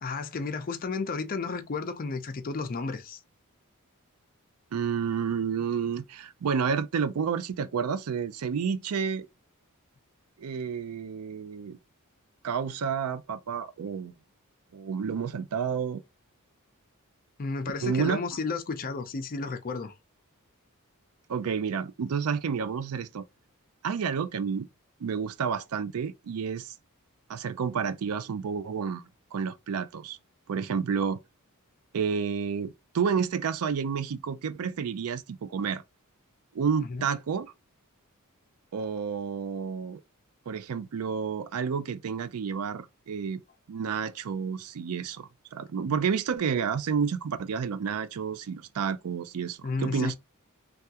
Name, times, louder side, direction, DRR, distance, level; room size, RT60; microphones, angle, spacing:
voice 1, 0.0-3.2 17.4-19.9 36.9-37.0 49.6-50.2, left 4 dB, 40° left, 0.5 m, -32 dB
voice 2, 4.7-9.3 10.4-11.8 12.4-14.1 14.7-16.0 17.8-18.2 21.3-23.2 23.8-24.7 25.0-26.7 27.3-29.0 29.3-30.2 30.5-31.2 31.9-35.8 36.5-37.5 38.7-40.0 40.5-43.4 43.7-50.1, right 6 dB, 75° right, 0.4 m, -30 dB
3.4 x 2.3 x 2.7 m
head